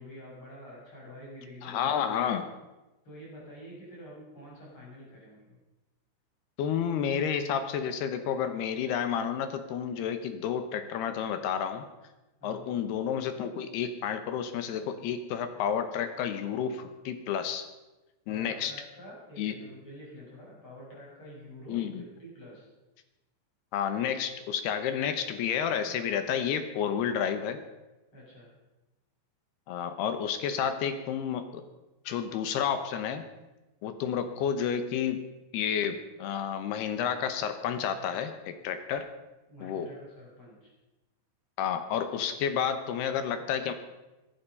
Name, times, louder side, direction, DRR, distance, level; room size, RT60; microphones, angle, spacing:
voice 1, 0.0-2.1 3.0-5.6 12.4-12.7 18.3-22.7 28.1-28.5 39.5-40.7, equal, 25° left, -5 dB, 7.4 m, -48 dB
voice 2, 1.6-2.5 6.6-11.9 12.4-17.7 18.3-18.7 19.4-19.6 21.7-22.0 23.7-27.6 29.7-31.6 32.1-33.2 33.8-35.2 35.5-39.1 39.6-39.9 41.6-43.7, left 8 dB, 75° left, 9 dB, 2.6 m, -30 dB
19.0 x 11.5 x 5.5 m, 1.0 s
omnidirectional pair, 5.5 m